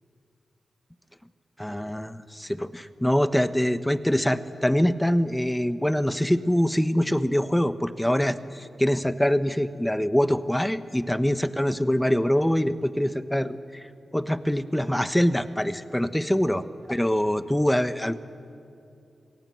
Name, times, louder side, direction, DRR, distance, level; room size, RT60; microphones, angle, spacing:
voice 1, 1.6-13.9 14.1-16.6 16.9-18.2, equal, 10° left, 12 dB, 1.2 m, -24 dB
26.5 x 18.0 x 7.8 m, 2.6 s
supercardioid pair, 40°, 0 cm